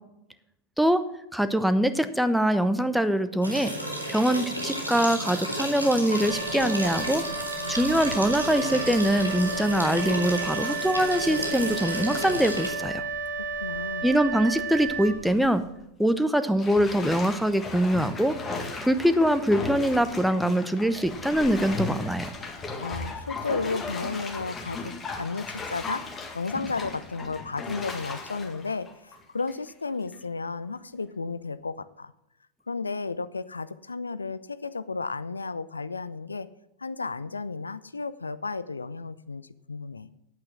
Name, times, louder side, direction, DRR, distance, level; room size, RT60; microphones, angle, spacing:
voice 1, 1.3-3.7 4.1-7.2 7.7-13.0 14.0-15.6 16.0-18.4 18.8-22.3, equal, ahead, 11 dB, 0.7 m, -23 dB
sound 1, 3.4-12.7, right 1 dB, 85° right, 2.2 m, -32 dB
Wind instrument woodwind instrument, 6.2-15.7, right 4 dB, 60° right, 3.8 m, -33 dB
voice 2, 13.3-14.1 22.6-32.1 32.7-36.5 36.8-40.1, left 4 dB, 75° left, 15 dB, 0.5 m, -33 dB
Bathtub (filling or washing), 14.4-14.8 15.3-15.4 16.6-29.7 30.1-30.2, left 3 dB, 15° left, 1.7 m, -36 dB
9.5 x 8.7 x 6.2 m, 0.83 s
figure-of-eight pair, 90°, 0 cm